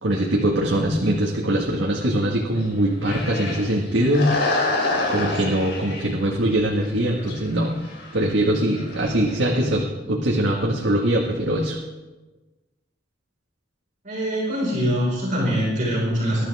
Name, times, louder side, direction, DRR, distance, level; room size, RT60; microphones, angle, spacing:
voice 1, 0.0-7.7 8.1-11.8, right 1 dB, 85° right, -2 dB, 1.8 m, -22 dB
sound 1, 2.5-3.8 4.0-6.1 6.7-6.9 7.2-7.4 7.7-9.6, left 2 dB, 80° left, 4.1 m, -27 dB
voice 2, 14.0-16.4, equal, 45° right, -4 dB, 5.1 m, -23 dB
21.5 x 12.0 x 3.6 m, 1.2 s
head